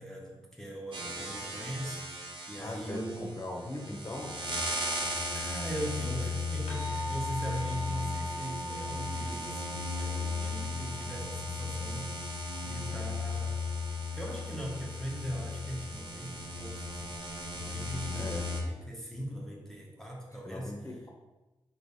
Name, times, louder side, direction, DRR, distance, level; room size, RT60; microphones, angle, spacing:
voice 1, 0.0-2.0 2.5-3.4 5.3-12.2 12.6-13.6 14.1-17.1 17.5-20.8, equal, 5° left, -3 dB, 0.9 m, -40 dB
sound 1, 0.9-18.6, left 2 dB, 60° right, 0.9 m, -36 dB
voice 2, 2.6-4.4 18.1-18.4 20.4-21.1, left 2 dB, 30° left, 0 dB, 1.0 m, -39 dB
sound 2, 6.7-15.4, equal, 85° left, 0.7 m, -43 dB
3.3 x 3.0 x 4.1 m, 1.1 s
cardioid pair, 55°, 10 cm